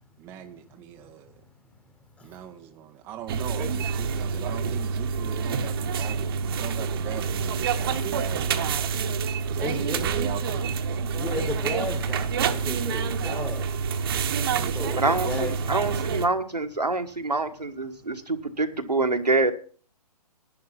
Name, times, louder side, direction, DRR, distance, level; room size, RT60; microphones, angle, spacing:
voice 1, 0.2-1.4 2.2-9.0 9.5-10.7 14.5-14.9, right 11 dB, 10° right, 0.5 m, -40 dB
sound 1, 3.3-16.3, right 6 dB, 35° right, 1.0 m, -27 dB
voice 2, 9.6-10.1 11.1-13.7 14.7-15.8, left 2 dB, 5° left, 1.2 m, -34 dB
voice 3, 15.0-19.5, right 3 dB, 85° right, 1.5 m, -26 dB
10.5 x 10.5 x 5.7 m
figure-of-eight pair, 130°, 20 cm